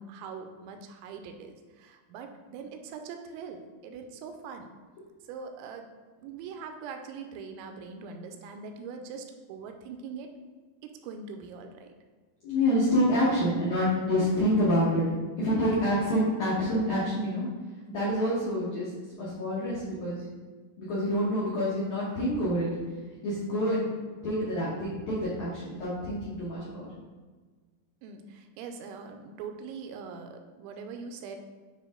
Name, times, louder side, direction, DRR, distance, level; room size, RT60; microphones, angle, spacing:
voice 1, 0.0-4.7 5.3-5.9 6.2-10.3 10.8-11.9 28.0-31.4, right 5 dB, 85° right, 6 dB, 2.8 m, -42 dB
voice 2, 12.4-17.5 17.9-18.9 19.2-20.3 20.8-22.7 23.2-23.9 24.2-26.9, equal, 80° left, -9 dB, 1.7 m, -27 dB
9.5 x 3.3 x 3.7 m, 1.4 s
omnidirectional pair, 5.4 m